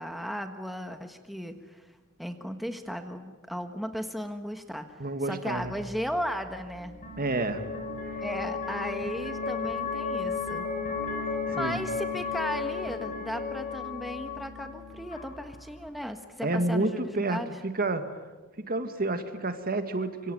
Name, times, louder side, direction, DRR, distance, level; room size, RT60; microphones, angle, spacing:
voice 1, 0.0-1.9 2.2-7.0 8.2-10.7 11.5-17.6, equal, ahead, 6 dB, 1.4 m, -36 dB
voice 2, 5.0-5.7 7.2-7.6 8.1-8.2 11.5-11.8 16.4-18.2 18.6-20.3, right 2 dB, 45° right, 8 dB, 2.1 m, -30 dB
sound 1, 5.6-15.9, left 5 dB, 40° left, 6.5 m, -34 dB
26.5 x 24.5 x 9.2 m, 1.3 s
head